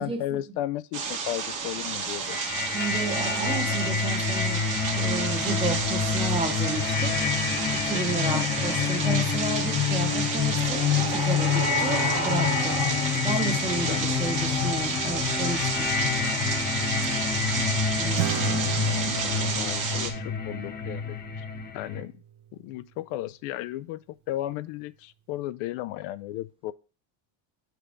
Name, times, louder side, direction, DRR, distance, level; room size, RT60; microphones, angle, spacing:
voice 1, 0.0-2.4 8.3-8.4 13.8-14.6 19.0-21.5 21.7-22.2 22.5-24.0 24.3-26.7, left 14 dB, 80° left, 0.5 m, -35 dB
sound 1, 0.9-20.1, right 5 dB, 40° right, 1.0 m, -31 dB
sound 2, 2.3-22.0, left 6 dB, 20° left, 0.5 m, -27 dB
voice 2, 2.7-4.6 5.0-7.1 7.7-12.8 13.2-15.9 18.0-18.6, right 3 dB, 10° right, 0.7 m, -32 dB
Acoustic guitar / Strum, 18.2-23.0, right 9 dB, 75° right, 0.8 m, -36 dB
7.2 x 3.5 x 4.9 m
cardioid pair, 165°, 49 cm